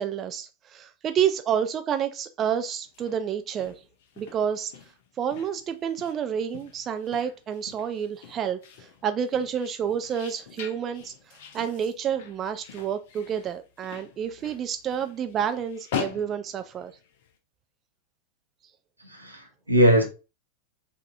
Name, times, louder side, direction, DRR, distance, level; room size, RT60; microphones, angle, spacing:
voice 1, 0.0-3.7 4.2-4.7 5.2-8.6 9.0-11.1 11.5-16.9, right 8 dB, 30° right, 0.3 m, -29 dB
sound 1, 2.8-17.3, left 7 dB, 50° left, 0.7 m, -42 dB
voice 2, 19.0-20.0, equal, 85° right, 1.0 m, -21 dB
5.2 x 2.7 x 2.5 m
figure-of-eight pair, 90°, 0 cm